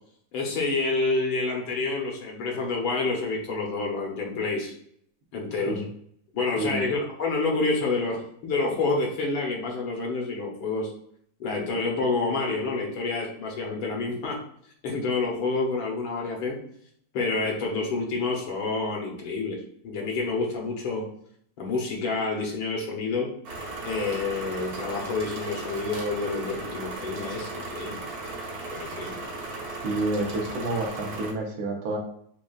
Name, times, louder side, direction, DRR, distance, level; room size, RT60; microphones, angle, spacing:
voice 1, 0.3-4.7 5.3-5.8 6.3-10.9 11.4-14.4 14.8-16.6 17.1-21.1 21.6-23.3 23.8-28.0 28.7-29.2, left 3 dB, 70° left, -1 dB, 1.6 m, -28 dB
sound 1, 23.4-31.3, right 3 dB, 50° right, 1.3 m, -36 dB
voice 2, 29.8-32.0, right 2 dB, 75° right, 0 dB, 1.7 m, -29 dB
6.5 x 2.3 x 2.3 m, 0.67 s
omnidirectional pair, 2.4 m